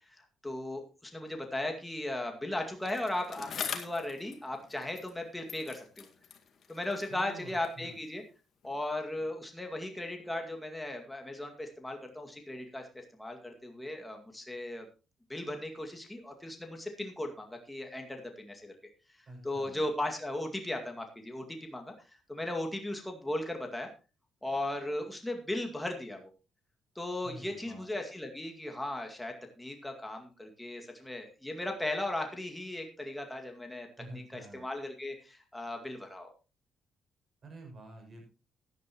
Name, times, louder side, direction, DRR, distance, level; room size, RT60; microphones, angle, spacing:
voice 1, 0.4-6.1 6.7-8.2 8.6-14.9 15.3-18.7 19.4-21.4 21.7-21.9 22.3-23.9 24.4-26.3 27.0-33.9 34.1-36.3, left 1 dB, 10° left, 3 dB, 2.2 m, -37 dB
Bicycle, 2.8-5.2 5.5-7.9 8.6-8.7, left 7 dB, 60° left, 1.9 m, -43 dB
voice 2, 7.1-8.0 19.3-19.8 27.2-27.9 34.0-34.6 37.4-38.2, right 1 dB, 45° right, 2 dB, 6.3 m, -48 dB
15.5 x 10.5 x 3.0 m, 0.32 s
cardioid pair, 90°, 0 cm